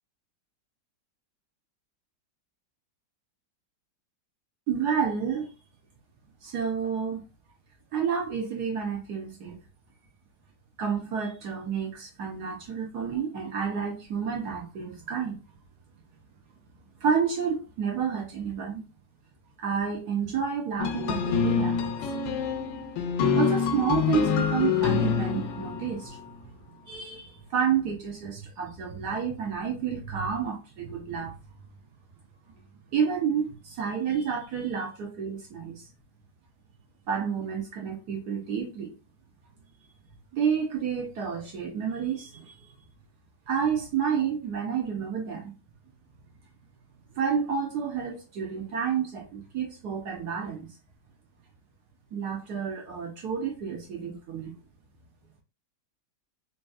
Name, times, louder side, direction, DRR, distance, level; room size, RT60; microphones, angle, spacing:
voice 1, 4.7-5.5 6.4-7.2 7.9-9.6 10.8-15.4 17.0-18.8 19.6-21.9 23.3-26.2 26.9-31.3 32.9-35.8 37.1-38.9 40.3-42.7 43.5-45.5 47.1-50.7 52.1-54.5, right 7 dB, 65° right, 1.4 m, -30 dB
sound 1, 20.8-26.2, left 6 dB, 80° left, 1.3 m, -26 dB
3.5 x 2.8 x 2.3 m
omnidirectional pair, 2.0 m